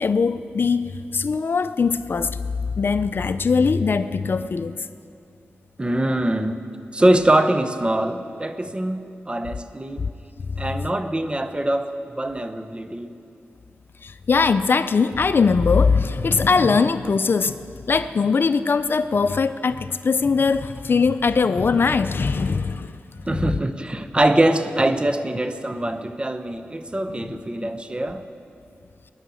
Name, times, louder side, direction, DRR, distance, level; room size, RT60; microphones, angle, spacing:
voice 1, 0.0-2.4 2.7-4.9 10.0-10.1 10.5-10.7 14.0-22.9 27.1-27.4, left 5 dB, 60° left, 12 dB, 0.5 m, -21 dB
voice 2, 5.8-6.6 6.9-10.1 10.6-13.1 23.3-28.2, right 1 dB, 25° right, 9 dB, 1.1 m, -23 dB
22.0 x 9.9 x 6.4 m, 2.5 s
cardioid pair, 55°, 4 cm